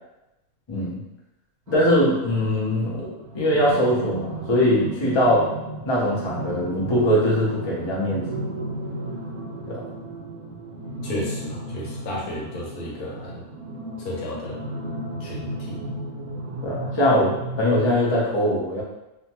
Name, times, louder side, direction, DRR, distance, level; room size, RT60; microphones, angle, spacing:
voice 1, 0.7-1.0 1.7-3.1 3.3-5.5 5.9-8.3 9.7-9.8 16.6-17.3 17.6-18.8, equal, 50° left, -5 dB, 0.3 m, -21 dB
sound 1, 1.7-17.9, right 1 dB, 85° right, 1.1 m, -34 dB
voice 2, 11.0-13.5 14.0-14.6 15.2-15.8, left 1 dB, 75° left, -3 dB, 1.2 m, -33 dB
2.8 x 2.2 x 2.8 m, 0.93 s
omnidirectional pair, 1.6 m